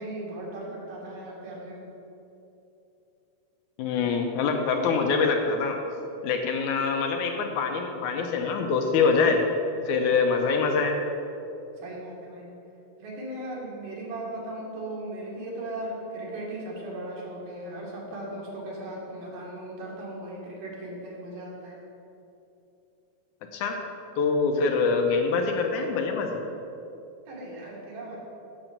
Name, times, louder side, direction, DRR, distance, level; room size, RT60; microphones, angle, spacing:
voice 1, 0.0-1.9 11.8-12.5 13.0-21.8 27.3-28.2, right 1 dB, 80° right, -4 dB, 3.7 m, -37 dB
voice 2, 3.8-5.8 6.2-9.4 9.9-11.0 23.5-23.8 24.2-26.4, left 4 dB, 75° left, 3 dB, 2.1 m, -24 dB
8.9 x 6.7 x 7.3 m, 2.9 s
omnidirectional pair, 3.8 m